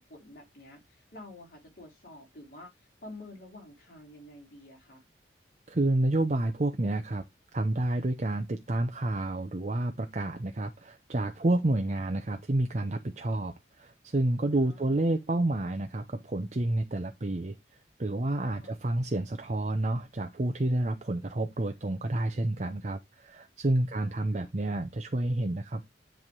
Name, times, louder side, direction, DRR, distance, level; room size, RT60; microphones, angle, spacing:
voice 1, 0.0-5.0 14.5-15.2 18.6-18.8 23.9-24.5, left 1 dB, 55° left, 3.6 m, -50 dB
voice 2, 5.7-7.2 7.5-17.6 18.0-25.8, right 1 dB, 40° right, 0.7 m, -29 dB
9.9 x 3.5 x 4.6 m
head